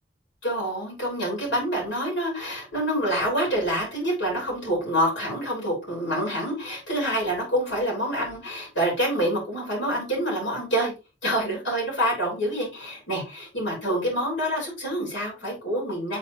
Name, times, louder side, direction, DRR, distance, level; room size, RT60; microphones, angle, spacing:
voice 1, 0.4-10.9 11.2-16.2, equal, 85° left, -2 dB, 3.6 m, -27 dB
8.1 x 3.9 x 3.1 m, 0.28 s
head